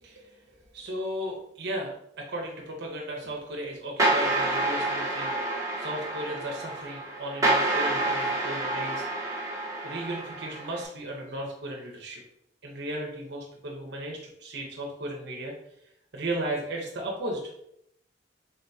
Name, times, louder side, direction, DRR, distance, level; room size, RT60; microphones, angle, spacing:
voice 1, 0.0-5.3 5.8-9.1 9.8-12.2 12.6-15.6 16.1-17.5, right 1 dB, 65° right, 0 dB, 0.8 m, -35 dB
sound 1, 4.0-10.9, right 2 dB, 20° right, 0.9 m, -28 dB
3.7 x 3.5 x 2.7 m, 0.74 s
head